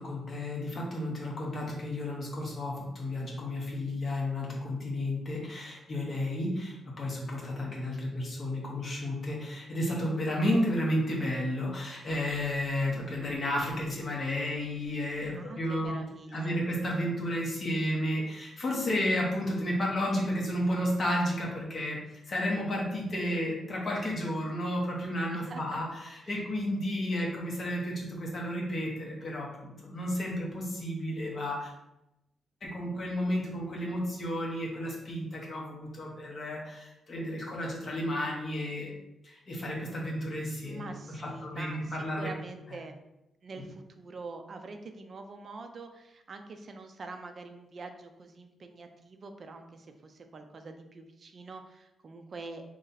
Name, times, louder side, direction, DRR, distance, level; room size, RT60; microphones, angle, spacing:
voice 1, 0.0-15.9 16.3-22.0 22.3-31.7 32.6-40.9 41.2-42.3, left 1 dB, 30° left, -3 dB, 0.9 m, -32 dB
voice 2, 15.3-16.6 25.3-25.8 26.2-26.4 40.6-42.9 43.4-52.6, right 3 dB, 35° right, 6 dB, 0.3 m, -45 dB
3.1 x 2.7 x 3.9 m, 0.92 s
wide cardioid pair, 165°, 0 cm